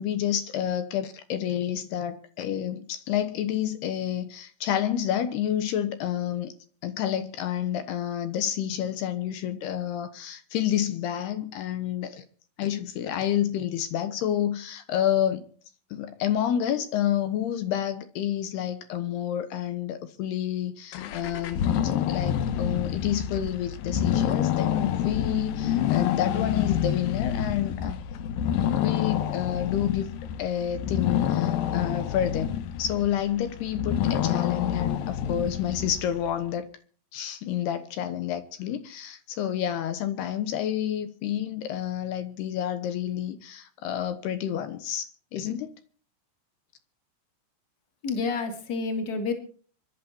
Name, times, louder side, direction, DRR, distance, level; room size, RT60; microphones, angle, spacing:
voice 1, 0.0-6.5 6.8-12.2 12.6-15.5 15.9-28.0 28.8-30.1 30.4-36.7 37.1-45.7, left 10 dB, 70° left, 2.7 m, -29 dB
sound 1, 20.9-36.3, left 9 dB, 90° left, 2.0 m, -28 dB
voice 2, 48.0-49.3, left 4 dB, 25° left, 2.3 m, -29 dB
24.5 x 12.0 x 4.5 m
omnidirectional pair, 5.7 m